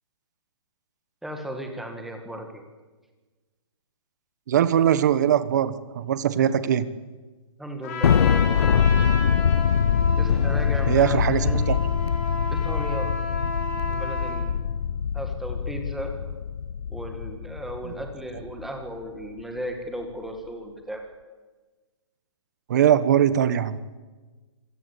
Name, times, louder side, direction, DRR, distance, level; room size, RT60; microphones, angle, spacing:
voice 1, 1.2-2.6 7.6-8.7 10.2-11.7 12.5-13.1 13.9-14.7 15.1-16.1 16.9-21.0, right 1 dB, ahead, 4 dB, 1.9 m, -35 dB
voice 2, 4.5-6.9 10.9-11.8 17.8-17.9 22.7-23.8, right 10 dB, 35° right, 14 dB, 1.2 m, -21 dB
Trumpet, 7.8-14.4, left 3 dB, 30° left, 5.0 m, -33 dB
Thunder, 8.0-18.7, left 7 dB, 55° left, 0.8 m, -23 dB
26.0 x 17.0 x 8.4 m, 1.3 s
hypercardioid pair, 170°, 16 cm